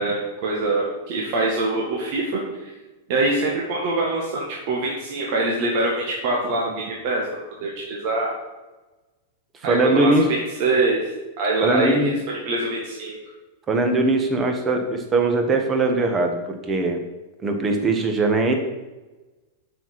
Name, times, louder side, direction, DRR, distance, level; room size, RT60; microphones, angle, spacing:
voice 1, 0.0-2.7 3.1-7.3 7.6-8.3 9.6-11.1 11.4-13.2, right 2 dB, 55° right, -2 dB, 1.8 m, -24 dB
voice 2, 9.6-10.2 11.6-12.1 13.7-16.4 16.7-17.0 17.4-18.5, right 2 dB, 25° right, 4 dB, 1.7 m, -20 dB
7.1 x 5.8 x 6.0 m, 1.1 s
hypercardioid pair, 100°, 0 cm